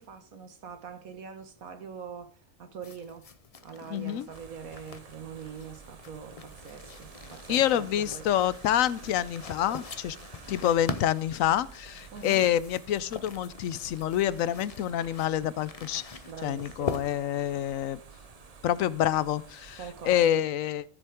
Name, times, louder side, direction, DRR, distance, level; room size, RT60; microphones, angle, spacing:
voice 1, 0.0-3.3 3.6-8.3 12.1-12.4 16.3-17.0 19.8-20.4, right 6 dB, 85° right, 1.8 m, -43 dB
sound 1, 2.8-19.4, left 4 dB, 35° left, 0.6 m, -43 dB
voice 2, 3.9-4.3 7.5-10.2 10.5-16.0 16.4-18.0 18.6-19.8 20.0-20.8, left 11 dB, 80° left, 1.0 m, -27 dB
sound 2, 4.3-20.2, right 5 dB, 35° right, 0.7 m, -50 dB
13.5 x 7.3 x 3.6 m
omnidirectional pair, 1.4 m